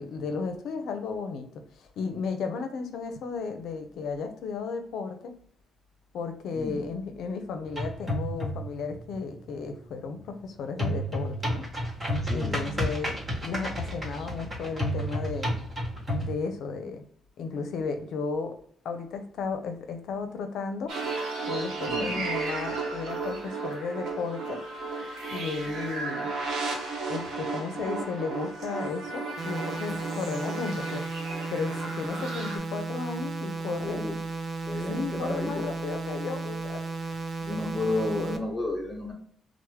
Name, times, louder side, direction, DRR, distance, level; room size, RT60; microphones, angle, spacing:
voice 1, 0.0-5.3 6.1-11.7 12.3-13.1 13.4-15.5 16.2-17.0 17.4-18.6 18.8-20.9 21.5-24.6 25.3-26.3 27.1-31.0 31.5-34.0 34.8-37.2 37.5-37.6, left 4 dB, 75° left, 7 dB, 0.5 m, -34 dB
sound 1, 7.7-8.8 10.8-16.3, equal, 30° right, 1.1 m, -31 dB
voice 2, 12.2-12.8 21.9-22.2 33.8-34.2 34.7-35.7 37.4-39.1, left 2 dB, 15° left, 0 dB, 0.9 m, -32 dB
sound 2, 20.9-32.6, right 3 dB, 80° right, 0.8 m, -34 dB
sound 3, 29.4-38.4, right 3 dB, 45° right, 0.4 m, -34 dB
3.0 x 2.0 x 3.1 m, 0.63 s
cardioid pair, 90°, 0 cm